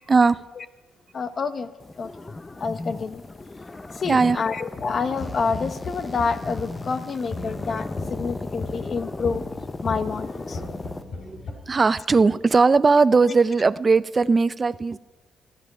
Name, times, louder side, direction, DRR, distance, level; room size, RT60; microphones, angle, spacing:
voice 1, 0.1-0.4 4.1-4.4 11.3-15.0, right 4 dB, 30° right, 0.4 m, -19 dB
voice 2, 1.1-1.7 2.0-2.2 2.6-3.2 3.9-9.4 9.8-10.6, left 5 dB, 45° left, 0.9 m, -28 dB
sound 1, 1.8-11.0, left 2 dB, 20° left, 0.6 m, -35 dB
sound 2, 4.7-11.5, left 3 dB, 60° left, 3.2 m, -37 dB
15.0 x 14.0 x 5.3 m
cardioid pair, 90°, 0 cm